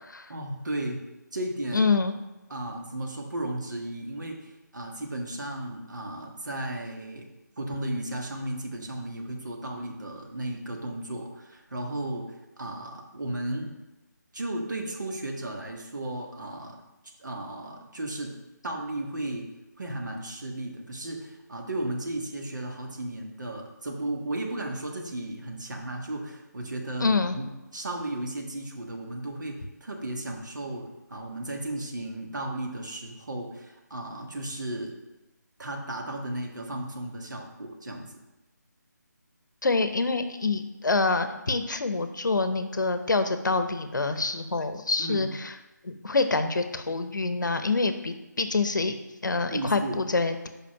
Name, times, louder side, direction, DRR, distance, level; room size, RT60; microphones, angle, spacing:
voice 1, 0.3-1.0 1.3-1.9 2.5-7.3 7.6-13.7 14.3-16.8 17.2-18.4 18.6-19.5 19.8-27.5 27.7-35.0 35.6-38.1 45.0-45.3 49.5-50.0, right 1 dB, 75° right, 1 dB, 1.4 m, -34 dB
voice 2, 1.7-2.1 27.0-27.4 39.6-45.5 45.8-48.9 49.2-50.5, left 3 dB, 75° left, 9 dB, 0.8 m, -26 dB
5.2 x 5.0 x 5.7 m, 1.0 s
figure-of-eight pair, 160°, 10 cm